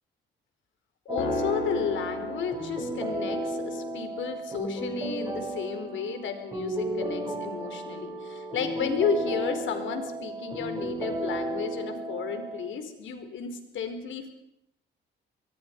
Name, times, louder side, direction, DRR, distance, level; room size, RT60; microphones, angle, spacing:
voice 1, 1.0-14.3, left 6 dB, 75° left, 7 dB, 4.6 m, -33 dB
sound 1, 1.1-12.7, right 1 dB, 20° right, 7.8 m, -34 dB
sound 2, 1.2-3.6, left 4 dB, 90° left, 6.2 m, -35 dB
25.5 x 22.5 x 5.4 m, 0.80 s
cardioid pair, 90°, 20 cm